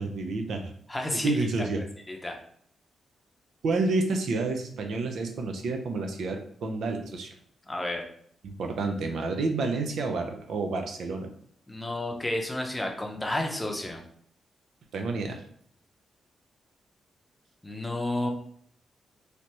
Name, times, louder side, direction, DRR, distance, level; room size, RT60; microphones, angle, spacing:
voice 1, 0.0-0.7 1.2-1.8 3.6-7.3 8.4-11.3 14.9-15.4, right 3 dB, 80° right, 4 dB, 0.5 m, -29 dB
voice 2, 0.9-1.4 2.1-2.4 7.7-8.0 11.7-14.0 17.6-18.3, left 1 dB, 15° left, 2 dB, 0.6 m, -31 dB
3.3 x 2.7 x 2.9 m, 0.63 s
cardioid pair, 105°, 0 cm